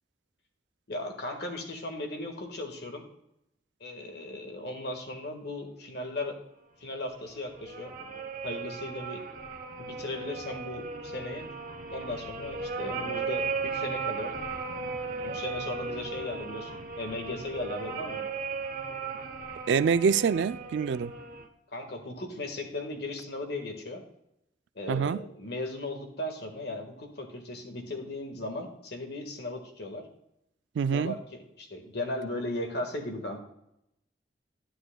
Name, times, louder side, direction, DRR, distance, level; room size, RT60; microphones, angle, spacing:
voice 1, 0.9-3.0 3.8-6.4 6.8-7.9 8.4-9.2 9.8-11.5 11.9-14.3 15.2-16.7 17.0-18.2 21.7-24.0 24.7-30.1 30.9-33.4, left 1 dB, 65° left, 1.6 m, -37 dB
sound 1, 7.1-21.5, right 4 dB, 50° right, 1.0 m, -36 dB
voice 2, 19.7-21.1 24.9-25.2 30.8-31.2, right 6 dB, 85° right, 0.3 m, -25 dB
11.0 x 10.0 x 2.2 m
head